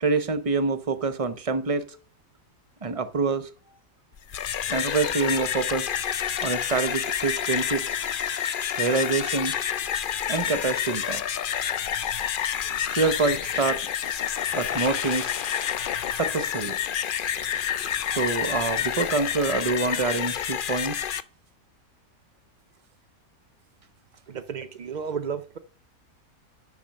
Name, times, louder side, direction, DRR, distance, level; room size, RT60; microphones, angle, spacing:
voice 1, 0.0-1.8 2.8-3.5 4.7-5.9 6.4-7.9 8.8-9.6 10.3-11.2 12.9-13.9 14.5-15.3 16.1-16.8 18.1-21.0, right 4 dB, 35° right, 0.6 m, -26 dB
sound 1, 4.2-21.2, left 9 dB, 80° left, 0.4 m, -28 dB
voice 2, 24.3-25.6, right 6 dB, 75° right, 0.4 m, -33 dB
10.5 x 6.0 x 6.4 m
omnidirectional pair, 1.6 m